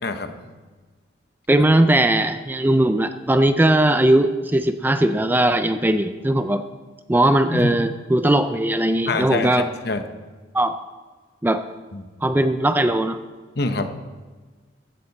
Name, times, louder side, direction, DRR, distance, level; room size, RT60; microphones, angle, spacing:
voice 1, 0.0-0.5 7.5-7.7 9.1-10.0 11.9-12.0 13.6-13.9, left 3 dB, 55° left, 8 dB, 1.0 m, -25 dB
voice 2, 1.5-6.6 7.1-9.7 10.5-10.8 11.4-11.6 12.2-13.2, right 1 dB, 10° right, 9 dB, 0.4 m, -19 dB
15.0 x 12.0 x 4.2 m, 1.4 s
head